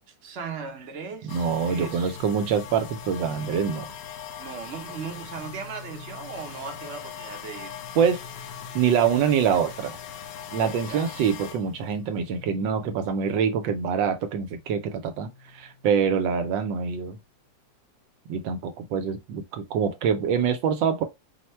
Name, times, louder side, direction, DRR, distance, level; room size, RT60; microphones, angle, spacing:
voice 1, 0.1-2.1 4.4-7.8 10.9-11.1, right 5 dB, 45° right, 1.0 m, -38 dB
sound 1, 1.3-14.0 14.3-16.8, left 8 dB, 70° left, 1.3 m, -41 dB
voice 2, 1.3-3.9 8.0-8.2 8.7-10.0 10.5-17.2 18.3-21.0, right 7 dB, 75° right, 1.3 m, -25 dB
4.6 x 2.1 x 4.3 m
omnidirectional pair, 2.1 m